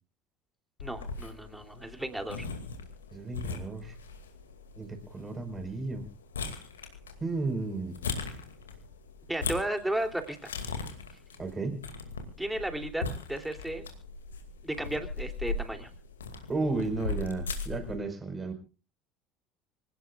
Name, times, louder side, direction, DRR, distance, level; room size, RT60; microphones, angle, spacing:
sound 1, 0.8-18.0, left 4 dB, 80° left, 2.3 m, -39 dB
voice 1, 0.8-2.5 9.3-10.5 12.4-13.0 13.3-13.8 14.6-15.9, right 1 dB, 5° right, 6 dB, 3.1 m, -34 dB
voice 2, 3.1-3.9 4.8-6.1 7.2-8.0 11.4-11.9 16.5-18.5, right 3 dB, 20° right, 8 dB, 4.8 m, -33 dB
26.0 x 17.5 x 2.4 m, 0.34 s
figure-of-eight pair, 65°, 0 cm